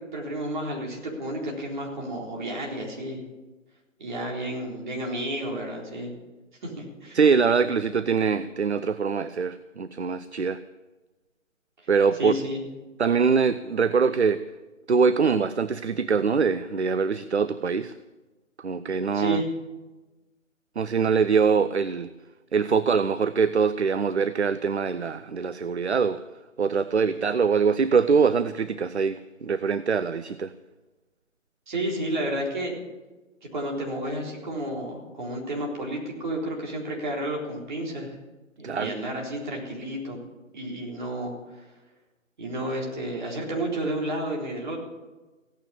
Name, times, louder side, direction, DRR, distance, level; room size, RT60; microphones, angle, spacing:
voice 1, 0.0-3.2 4.0-6.1 6.6-7.2 12.2-12.6 19.1-19.5 31.7-32.8 33.4-38.2 38.6-40.2 40.5-41.3 42.4-44.8, right 1 dB, 35° right, -2 dB, 4.1 m, -31 dB
voice 2, 7.1-10.6 11.9-12.4 13.0-14.4 14.9-17.9 18.6-19.4 20.8-22.1 22.5-26.2 26.6-30.5 38.6-38.9, right 5 dB, 55° right, 14 dB, 0.6 m, -23 dB
16.5 x 9.3 x 8.8 m, 1.2 s
figure-of-eight pair, 150°, 40 cm